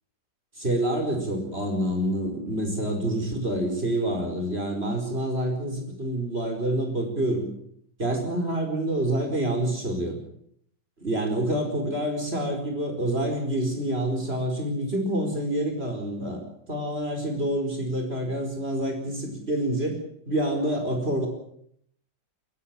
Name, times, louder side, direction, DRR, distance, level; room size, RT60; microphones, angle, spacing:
voice 1, 0.6-7.5 8.0-10.2 11.0-20.0 20.3-21.3, right 1 dB, 30° right, 3 dB, 5.0 m, -27 dB
21.5 x 18.5 x 8.9 m, 0.69 s
omnidirectional pair, 2.0 m